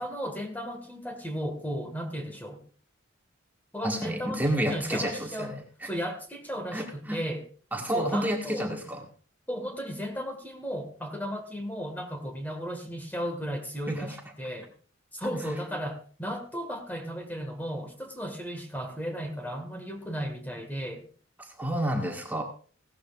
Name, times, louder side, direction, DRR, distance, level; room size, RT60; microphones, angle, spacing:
voice 1, 0.0-2.6 3.7-5.5 5.8-7.4 7.9-8.7 9.5-14.7 15.1-21.1, equal, 10° left, 5 dB, 1.7 m, -35 dB
voice 2, 3.8-5.9 6.7-7.2 7.7-9.0 13.9-14.2 21.4-22.4, right 1 dB, 10° right, 1 dB, 1.7 m, -30 dB
16.5 x 13.0 x 2.5 m, 0.41 s
head